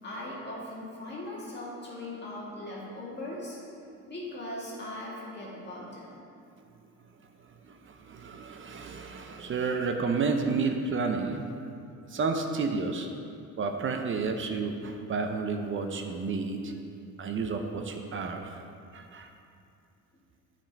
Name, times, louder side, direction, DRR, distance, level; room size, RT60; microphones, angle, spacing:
voice 1, 0.0-3.6 4.1-6.2, left 1 dB, 35° left, -6 dB, 2.0 m, -39 dB
voice 2, 7.7-11.7 12.1-13.1 13.6-16.7 17.2-18.6 18.9-19.3, right 4 dB, 40° right, 5 dB, 0.7 m, -31 dB
8.8 x 5.2 x 5.2 m, 2.5 s
cardioid pair, 100°, 32 cm